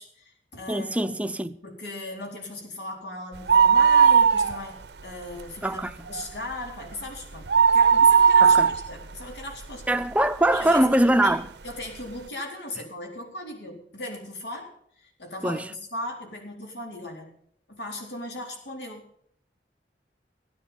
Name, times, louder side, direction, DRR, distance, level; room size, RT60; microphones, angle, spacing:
voice 1, 0.0-1.1 1.6-7.5 7.7-10.0 10.5-11.3 11.6-17.3 17.7-19.1, left 1 dB, 85° left, 4.2 m, -37 dB
voice 2, 0.7-1.6 5.6-6.1 8.4-8.7 9.9-11.5 15.4-15.7, right 1 dB, 10° right, 0.6 m, -23 dB
sound 1, 3.3-5.0 5.3-5.4 5.9-10.3 10.8-10.9 11.7-11.8 12.0-12.1, right 6 dB, 80° right, 0.8 m, -18 dB
16.0 x 9.8 x 7.0 m
head